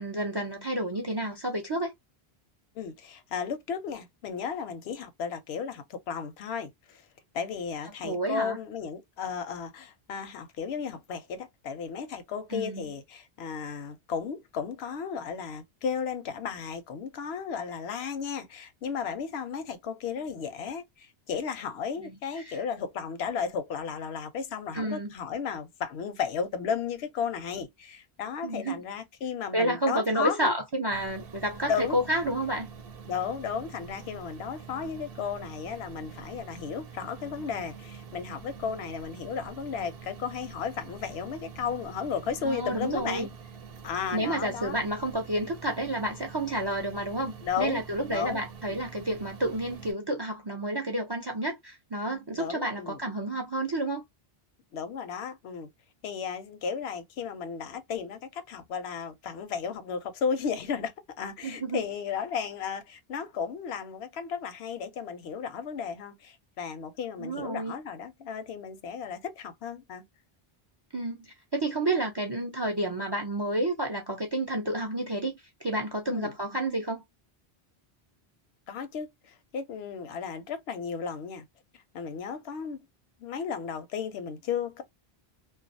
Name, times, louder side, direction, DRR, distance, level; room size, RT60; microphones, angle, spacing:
voice 1, 0.0-1.9 8.0-8.6 12.5-12.9 22.0-22.6 24.7-25.1 28.4-28.8 29.5-32.7 42.4-43.3 44.1-54.0 61.4-61.8 67.2-67.7 70.9-75.3 75.6-77.0, right 1 dB, 40° right, 0.3 m, -30 dB
voice 2, 2.8-7.0 7.3-30.5 31.7-32.0 33.1-43.3 43.8-44.8 47.4-47.8 48.1-48.4 48.7-48.8 52.3-53.0 54.7-55.7 56.0-70.0 76.1-76.3 78.7-81.4 81.9-82.9 83.2-84.8, left 6 dB, 90° left, 0.8 m, -34 dB
sound 1, 30.9-49.9, right 6 dB, 70° right, 0.8 m, -46 dB
2.3 x 2.3 x 2.5 m
omnidirectional pair, 1.0 m